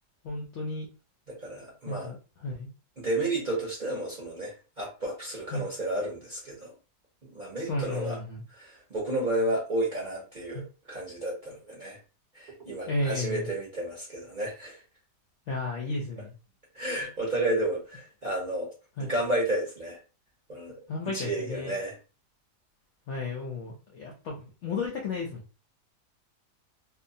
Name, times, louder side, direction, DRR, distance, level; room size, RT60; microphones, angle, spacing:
voice 1, 0.2-0.9 1.8-2.7 5.5-5.7 7.6-8.4 10.5-10.6 12.8-13.5 15.5-16.3 19.0-19.1 20.9-21.7 23.1-25.4, left 2 dB, 65° left, -1 dB, 0.7 m, -33 dB
voice 2, 1.3-2.1 3.0-6.7 7.3-8.2 8.5-12.0 12.3-14.8 16.7-18.7 19.0-20.0 20.5-20.7 21.1-22.0, right 1 dB, 45° right, -4 dB, 0.6 m, -32 dB
2.7 x 2.1 x 2.6 m, 0.34 s
omnidirectional pair, 1.7 m